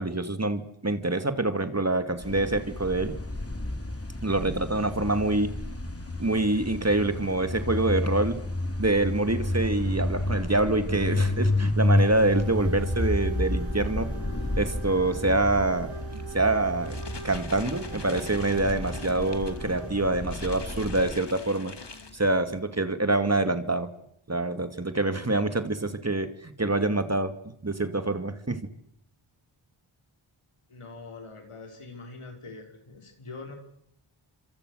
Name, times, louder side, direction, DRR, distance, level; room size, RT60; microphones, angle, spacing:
voice 1, 0.0-3.1 4.2-5.5 6.2-8.4 8.8-14.1 14.6-17.0 17.2-21.7 22.1-24.0 24.3-28.7, right 2 dB, 30° right, 9 dB, 2.6 m, -26 dB
sound 1, 2.2-21.1, left 2 dB, 25° left, 3.5 m, -30 dB
sound 2, 12.0-20.4, right 7 dB, 75° right, 2.9 m, -44 dB
sound 3, 16.7-22.6, left 3 dB, 55° left, 2.6 m, -43 dB
voice 2, 30.7-33.6, left 3 dB, 85° left, 3 dB, 5.5 m, -43 dB
26.5 x 26.5 x 6.7 m, 0.71 s
cardioid pair, 45°, 50 cm